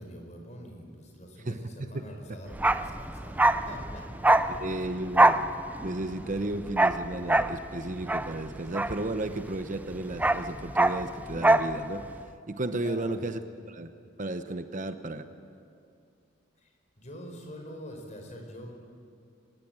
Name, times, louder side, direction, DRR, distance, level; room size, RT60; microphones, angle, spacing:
voice 1, 0.0-5.2 12.8-13.2 16.6-16.7 17.0-18.7, equal, 35° left, 3 dB, 4.6 m, -45 dB
voice 2, 1.9-2.4 4.5-5.4 5.8-12.1 12.5-13.9 14.2-15.3, right 2 dB, 40° right, 9 dB, 0.9 m, -34 dB
Bark, 2.5-9.6 9.8-11.8 12.0-12.2, right 2 dB, 10° right, 0.5 m, -24 dB
23.0 x 20.0 x 8.8 m, 2.5 s
head